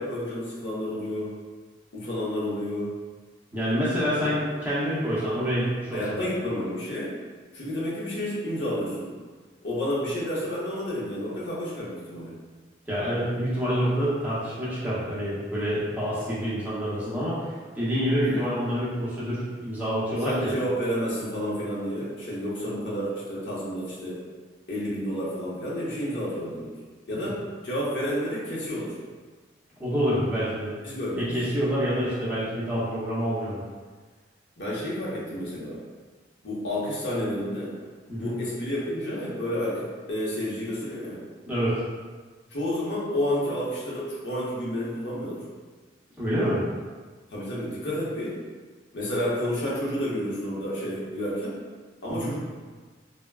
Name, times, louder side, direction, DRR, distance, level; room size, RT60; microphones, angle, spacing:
voice 1, 0.0-1.3 1.9-2.9 4.1-4.3 5.9-7.2 7.5-9.1 9.6-12.3 18.2-18.4 20.2-24.2 24.7-26.7 27.1-29.0 30.8-31.3 34.6-35.8 36.4-37.7 38.2-41.2 42.5-45.4 47.3-48.4 48.9-51.6 52.0-52.4, equal, 70° left, -7 dB, 0.8 m, -30 dB
voice 2, 3.5-6.2 12.9-17.4 17.7-20.5 27.2-27.3 29.8-30.7 31.1-33.6 38.1-38.3 41.5-41.8 46.2-46.6 52.1-52.3, equal, 10° right, -10 dB, 0.7 m, -27 dB
3.4 x 2.1 x 2.3 m, 1.4 s
head